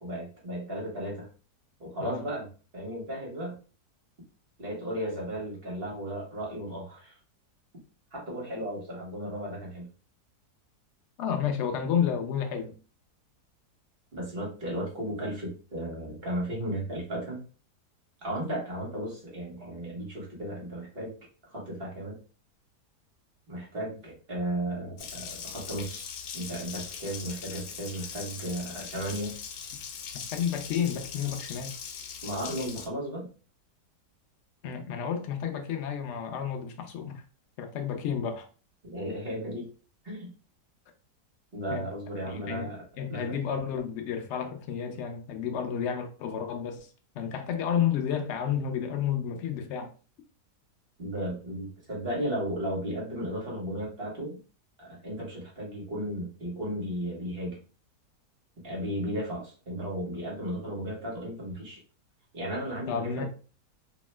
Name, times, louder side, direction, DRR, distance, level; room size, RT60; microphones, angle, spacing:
voice 1, 0.0-1.3 1.8-2.5 2.7-3.6 4.6-7.2 8.1-9.9 14.1-17.4 18.2-21.1 21.5-22.2 23.5-29.4 32.2-33.3 38.8-39.7 40.0-40.3 41.5-42.8 43.1-43.2 51.0-54.4 54.8-57.6 58.6-61.8 62.3-63.2, right 1 dB, 40° right, 1.1 m, -35 dB
voice 2, 11.2-12.7 30.3-31.8 34.6-37.2 37.6-38.5 41.7-41.9 42.3-49.9 62.9-63.2, left 8 dB, 90° left, 0.6 m, -31 dB
Water tap faucet, 25.0-32.9, left 7 dB, 70° left, 0.9 m, -41 dB
2.8 x 2.1 x 3.2 m
omnidirectional pair, 1.8 m